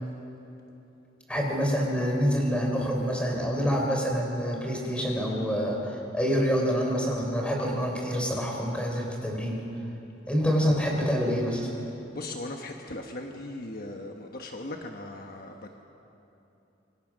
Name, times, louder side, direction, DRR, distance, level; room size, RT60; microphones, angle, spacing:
voice 1, 1.3-9.6 10.3-11.7, equal, 5° left, 0 dB, 3.9 m, -27 dB
voice 2, 12.1-15.8, left 2 dB, 50° left, 3 dB, 1.2 m, -38 dB
25.5 x 23.0 x 6.3 m, 3.0 s
head